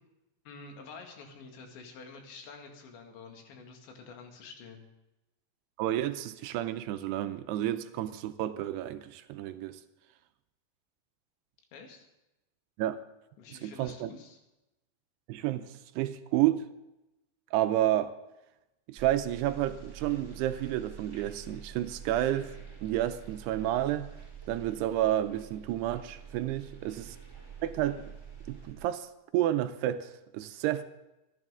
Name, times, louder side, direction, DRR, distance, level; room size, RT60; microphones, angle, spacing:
voice 1, 0.5-4.9 11.7-12.1 13.4-14.4 26.8-27.0, left 4 dB, 90° left, 3 dB, 4.2 m, -48 dB
voice 2, 5.8-9.8 12.8-13.0 13.6-14.1 15.3-16.6 17.5-18.2 18.9-22.5 22.8-24.1 24.5-27.2 27.6-28.1 28.5-30.8, right 13 dB, 80° right, 10 dB, 2.6 m, -30 dB
sound 1, 19.0-28.7, right 7 dB, 5° right, 4.3 m, -47 dB
26.5 x 10.5 x 3.6 m, 0.96 s
omnidirectional pair, 5.0 m